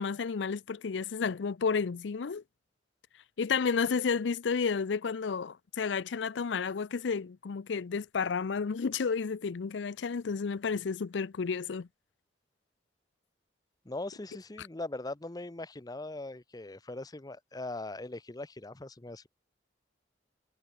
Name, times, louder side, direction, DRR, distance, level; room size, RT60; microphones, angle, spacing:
voice 1, 0.0-2.4 3.4-11.9, left 5 dB, 85° left, 0.5 m, -31 dB
voice 2, 13.8-19.3, left 2 dB, 20° left, 0.7 m, -40 dB
head